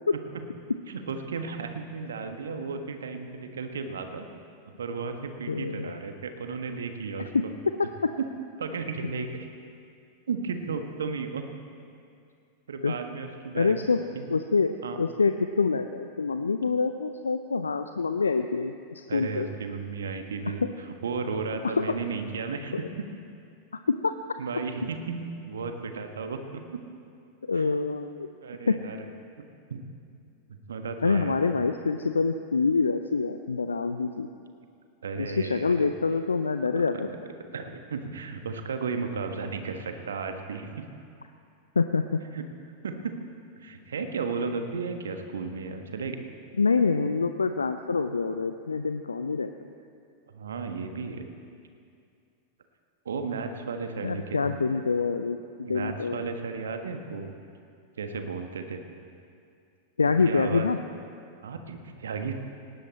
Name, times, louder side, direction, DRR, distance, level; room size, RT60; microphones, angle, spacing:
voice 1, 0.1-0.4 0.9-4.3 4.8-7.5 8.2-8.3 8.6-9.5 10.3-11.4 12.7-13.8 14.1-14.3 14.8-15.0 19.1-23.1 24.4-26.6 27.5-27.8 28.4-29.1 29.7-29.8 30.7-31.5 35.0-35.9 36.7-40.8 42.2-42.4 42.8-43.1 43.6-46.2 47.8-48.7 50.3-51.2 53.0-55.0 55.7-57.3 58.0-58.8 60.0-60.7 61.4-62.3, right 5 dB, 65° right, 6 dB, 1.5 m, -34 dB
voice 2, 5.5-5.9 12.8-13.0 13.5-14.0 14.3-19.5 21.6-21.9 23.7-24.1 27.5-28.3 28.7-28.8 31.0-34.3 35.2-37.2 41.8-42.2 46.6-49.5 54.0-56.3 60.0-60.8, left 4 dB, 75° left, 9 dB, 0.5 m, -26 dB
19.0 x 17.5 x 4.3 m, 2.4 s
figure-of-eight pair, 90°, 0 cm